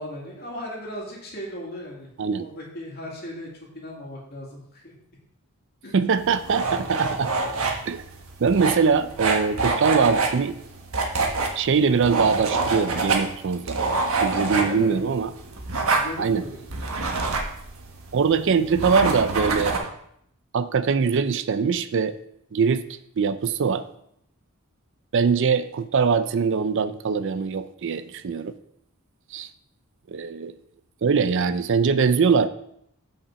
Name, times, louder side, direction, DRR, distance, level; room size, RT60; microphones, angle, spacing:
voice 1, 0.0-2.1 2.4-3.5 3.7-4.9 5.8-6.1 14.5-15.0 15.9-16.6, equal, 45° left, -2 dB, 2.3 m, -37 dB
voice 2, 5.9-7.3 7.9-8.0 8.4-10.6 11.6-13.8 14.2-15.3 16.2-16.5 18.1-19.8 20.5-22.2 22.5-22.8 23.2-23.8 25.1-28.5 29.3-29.5 30.1-30.5 31.0-32.5, right 5 dB, 55° right, 13 dB, 0.4 m, -22 dB
sound 1, 6.2-19.8, right 3 dB, 70° right, 1.3 m, -26 dB
5.8 x 5.3 x 6.8 m, 0.72 s
head